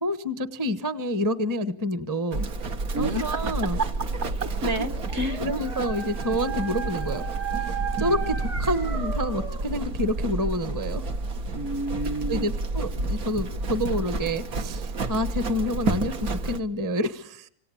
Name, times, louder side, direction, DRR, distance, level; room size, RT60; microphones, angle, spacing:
voice 1, 0.0-2.5 3.0-3.8 4.6-4.9 5.4-7.3 7.6-11.0 12.3-17.5, equal, 15° right, 12 dB, 1.0 m, -28 dB
Livestock farm animals working animals, 2.3-16.6, right 3 dB, 65° right, 2.1 m, -30 dB
voice 2, 2.9-3.7 4.4-5.4 11.5-12.5, right 1 dB, 45° right, 7 dB, 1.7 m, -30 dB
Dog, 4.6-9.7, right 8 dB, 85° right, 3.8 m, -35 dB
26.5 x 26.0 x 8.6 m, 0.64 s
omnidirectional pair, 1.7 m